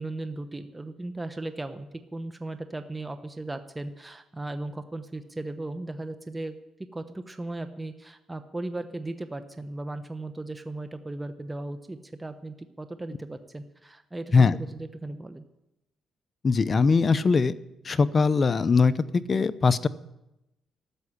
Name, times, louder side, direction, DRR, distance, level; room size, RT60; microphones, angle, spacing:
voice 1, 0.0-6.6 6.9-15.4, right 2 dB, 15° right, 9 dB, 1.0 m, -37 dB
voice 2, 16.4-17.5 17.8-19.9, left 4 dB, 40° left, 14 dB, 0.7 m, -21 dB
13.5 x 7.8 x 10.0 m, 0.90 s
cardioid pair, 90°, 0 cm